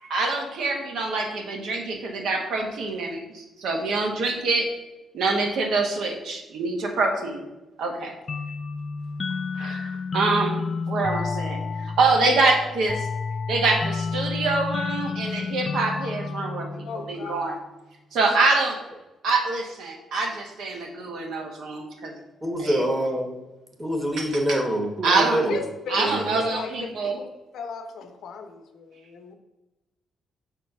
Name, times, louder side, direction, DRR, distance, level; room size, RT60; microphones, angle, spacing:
voice 1, 0.1-4.7 5.1-7.4 7.8-8.1 9.5-13.1 13.5-17.5 18.1-18.8 19.2-22.2 22.6-22.8 24.2-24.6 25.0-25.4 25.9-27.2, right 3 dB, 70° right, 2 dB, 1.3 m, -25 dB
sound 1, 8.3-17.6, left 4 dB, 35° left, 0.3 m, -31 dB
voice 2, 16.8-17.6 18.2-18.4 25.5-27.3 27.5-29.3, left 5 dB, 70° left, 5 dB, 0.9 m, -37 dB
voice 3, 22.4-23.3 23.8-25.6 26.0-26.3, right 1 dB, 10° right, 3 dB, 1.1 m, -25 dB
5.7 x 4.3 x 5.4 m, 1.0 s
cardioid pair, 140°, 0 cm